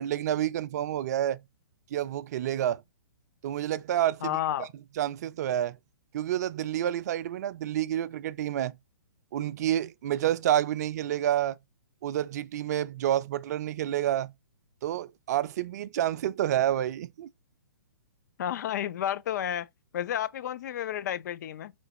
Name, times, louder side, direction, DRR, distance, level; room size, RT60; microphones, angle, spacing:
voice 1, 0.0-1.4 1.9-2.8 3.4-4.4 5.0-5.8 6.1-8.8 9.3-11.6 12.0-14.3 14.8-17.3, right 11 dB, 50° right, 0.4 m, -29 dB
voice 2, 4.2-4.7 18.4-19.7 19.9-21.7, left 10 dB, 55° left, 0.4 m, -31 dB
4.0 x 3.2 x 4.0 m
hypercardioid pair, 125°, 12 cm